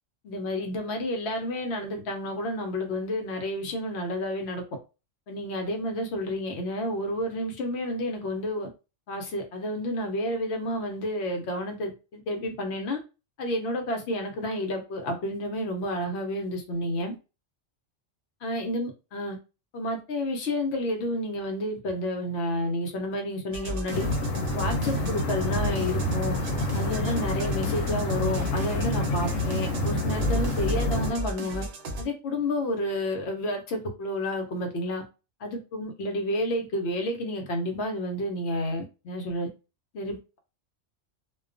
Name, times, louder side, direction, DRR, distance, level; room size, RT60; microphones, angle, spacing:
voice 1, 0.2-4.6 5.3-8.7 9.1-13.0 13.4-17.1 18.4-19.4 19.7-24.1 24.5-26.4 26.7-31.7 32.0-35.0 35.4-39.5 39.9-40.4, left 1 dB, 65° left, 0.9 m, -30 dB
sound 1, 23.5-32.0, equal, 65° right, 0.8 m, -34 dB
sound 2, 23.9-31.1, left 1 dB, 85° left, 1.0 m, -28 dB
2.3 x 2.2 x 2.4 m
omnidirectional pair, 1.3 m